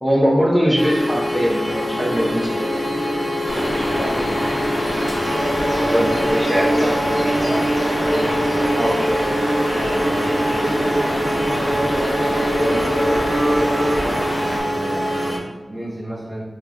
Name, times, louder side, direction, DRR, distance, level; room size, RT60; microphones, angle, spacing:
voice 1, 0.0-2.7 5.8-7.0 8.7-9.0, equal, 5° right, -7 dB, 0.9 m, -20 dB
sound 1, 0.8-15.4, equal, 25° right, 1.4 m, -25 dB
sound 2, 2.1-14.0, right 1 dB, 75° right, 0.4 m, -25 dB
sound 3, 3.5-14.6, equal, 50° left, 1.1 m, -26 dB
voice 2, 3.5-4.7 7.0-8.4 9.7-16.4, right 1 dB, 50° right, -8 dB, 1.0 m, -31 dB
5.4 x 2.4 x 2.4 m, 1.2 s
cardioid pair, 50°, 0 cm